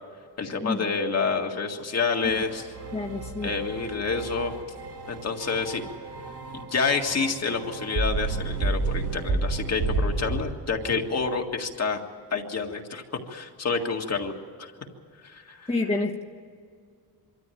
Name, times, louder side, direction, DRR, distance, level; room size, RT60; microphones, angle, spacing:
voice 1, 0.4-2.7 3.4-4.5 5.1-5.8 6.5-12.0 12.3-13.0 13.3-14.3 14.6-14.7 15.2-15.7, left 4 dB, 40° left, 3 dB, 1.9 m, -28 dB
sound 1, 2.2-10.4, right 3 dB, 75° right, 5.3 m, -31 dB
voice 2, 2.9-3.5 15.7-16.2, left 2 dB, 15° left, 0 dB, 1.3 m, -28 dB
24.0 x 13.5 x 9.2 m, 2.2 s
cardioid pair, 120°, 38 cm